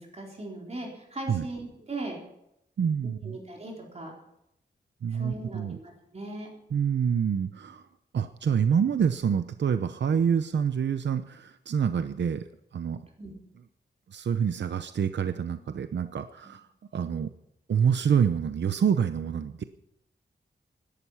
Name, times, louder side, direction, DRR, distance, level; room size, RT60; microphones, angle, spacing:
voice 1, 0.0-2.2 3.2-4.1 5.1-6.5 13.2-13.3, right 2 dB, 35° right, -1 dB, 4.2 m, -39 dB
voice 2, 2.8-3.4 5.0-5.8 6.7-7.8 8.1-12.4 12.7-13.0 14.1-16.7 16.9-17.3 17.7-19.6, right 7 dB, 75° right, 10 dB, 0.8 m, -27 dB
17.0 x 12.0 x 5.8 m, 0.81 s
wide cardioid pair, 160°, 18 cm